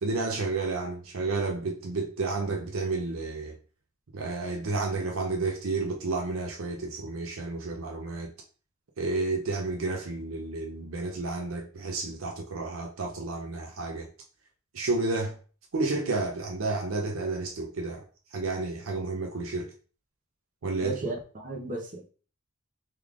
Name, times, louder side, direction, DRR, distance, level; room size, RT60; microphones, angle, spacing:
voice 1, 0.0-3.6 4.1-8.3 9.0-14.1 14.7-15.3 15.7-18.0 18.3-19.7 20.6-21.0, right 3 dB, 70° right, 2 dB, 0.6 m, -31 dB
voice 2, 20.8-22.1, right 2 dB, 40° right, -1 dB, 0.8 m, -35 dB
3.5 x 3.1 x 2.4 m, 0.39 s
head